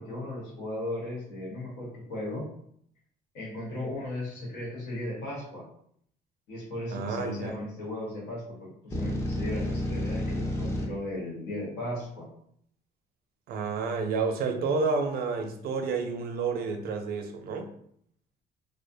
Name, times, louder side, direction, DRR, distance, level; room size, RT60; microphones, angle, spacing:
voice 1, 0.0-2.5 3.3-5.6 6.5-12.3, left 1 dB, 85° left, -4 dB, 1.2 m, -36 dB
voice 2, 6.9-7.6 13.5-17.7, right 4 dB, 65° right, 5 dB, 0.4 m, -30 dB
sound 1, 8.9-10.9, left 1 dB, 15° left, 0.6 m, -30 dB
2.5 x 2.1 x 2.5 m, 0.68 s
cardioid pair, 110°, 17 cm